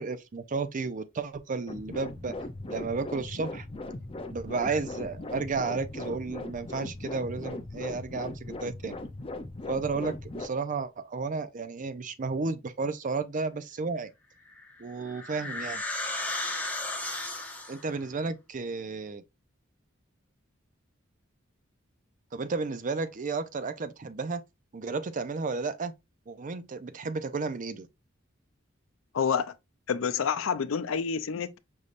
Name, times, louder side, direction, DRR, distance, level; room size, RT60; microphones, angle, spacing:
voice 1, 0.0-2.3 2.7-3.7 4.3-9.0 9.7-14.1 14.8-15.8 17.7-19.2 22.3-24.4 24.7-25.9 26.3-27.9, right 4 dB, 40° right, 0.5 m, -32 dB
sound 1, 1.7-10.5, left 2 dB, 30° left, 0.5 m, -39 dB
sound 2, 14.5-17.9, left 2 dB, 10° left, 1.0 m, -34 dB
voice 2, 29.1-29.5 29.9-31.6, left 6 dB, 85° left, 0.5 m, -28 dB
5.4 x 3.3 x 2.5 m
head